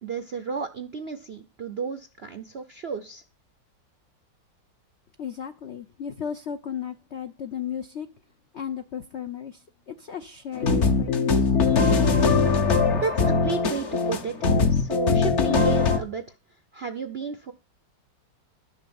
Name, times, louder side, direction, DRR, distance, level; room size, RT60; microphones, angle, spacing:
voice 1, 0.0-3.2 13.0-16.2 16.7-17.5, right 5 dB, 60° right, 0.6 m, -32 dB
voice 2, 5.2-8.1 8.5-11.5, left 8 dB, 75° left, 0.6 m, -35 dB
sound 1, 10.6-16.0, left 4 dB, 45° left, 1.0 m, -21 dB
11.5 x 6.5 x 7.0 m
omnidirectional pair, 2.1 m